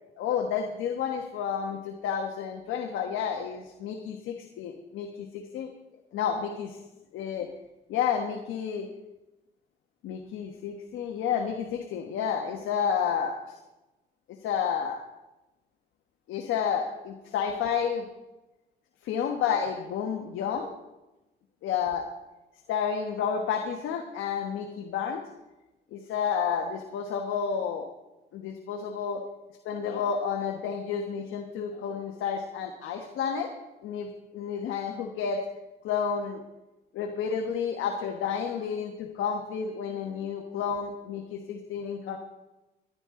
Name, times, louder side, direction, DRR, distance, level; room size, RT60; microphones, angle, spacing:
voice 1, 0.2-5.7 6.1-6.8 7.1-7.5 7.9-8.9 10.0-13.4 14.4-15.0 16.3-18.1 19.0-20.7 21.6-22.1 22.7-25.2 25.9-27.9 28.3-29.2 29.6-33.5 33.8-35.4 35.8-36.4 36.9-42.2, left 7 dB, 85° left, 3 dB, 1.3 m, -30 dB
20.0 x 11.0 x 3.8 m, 1.0 s
cardioid pair, 90°, 20 cm